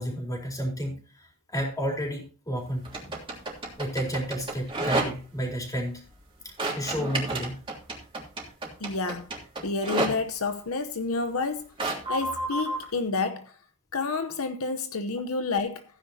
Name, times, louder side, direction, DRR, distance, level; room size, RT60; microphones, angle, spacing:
voice 1, 0.0-3.1 3.8-6.0 6.4-7.6, equal, 15° left, 4.2 m, -31 dB
sound 1, 2.8-5.4 6.6-10.1 11.8-12.9, right 2 dB, 25° right, 3.2 m, -30 dB
voice 2, 8.8-9.3 9.6-11.7 12.1-13.5 13.9-15.8, left 4 dB, 70° left, 0.9 m, -29 dB
15.5 x 10.0 x 2.8 m
head